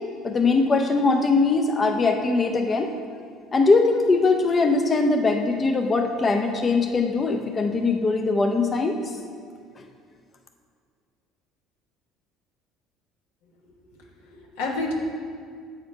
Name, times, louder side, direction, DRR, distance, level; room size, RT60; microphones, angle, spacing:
voice 1, 0.2-2.9 3.5-9.0, left 3 dB, 30° left, 4 dB, 0.5 m, -21 dB
voice 2, 13.6-14.9, left 2 dB, 85° left, -1 dB, 1.0 m, -32 dB
7.5 x 3.7 x 4.5 m, 2.1 s
supercardioid pair, 90°, 0 cm